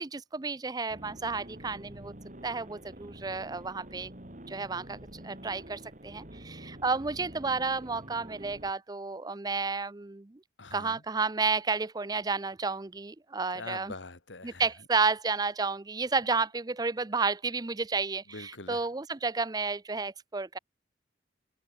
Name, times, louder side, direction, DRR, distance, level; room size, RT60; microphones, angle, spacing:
voice 1, 0.0-2.1 2.4-4.1 4.5-10.4 10.7-13.9 14.4-20.6, right 4 dB, 20° right, 0.5 m, -31 dB
sound 1, 0.9-8.7, right 1 dB, 45° right, 3.9 m, -47 dB
voice 2, 10.6-11.0 13.5-14.7 18.3-18.9, left 3 dB, 90° left, 2.4 m, -43 dB
head